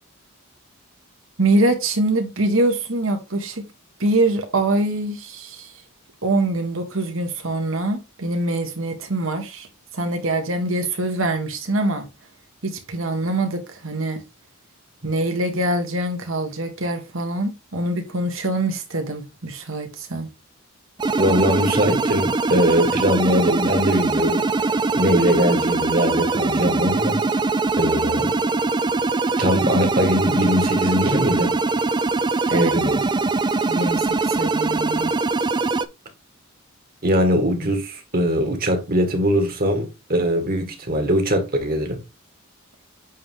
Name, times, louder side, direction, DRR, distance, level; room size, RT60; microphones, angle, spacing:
voice 1, 1.4-3.7 4.0-5.7 6.2-9.7 9.9-12.1 12.6-14.2 15.0-20.3 32.5-32.7 33.7-35.1, right 2 dB, 65° right, 1.7 m, -24 dB
sound 1, 21.0-35.9, right 3 dB, 20° right, 0.4 m, -22 dB
voice 2, 21.2-24.5 24.9-27.2 27.8-28.3 29.4-31.6 32.5-33.0 37.0-42.0, equal, 45° right, 1.8 m, -21 dB
8.4 x 3.5 x 3.7 m
head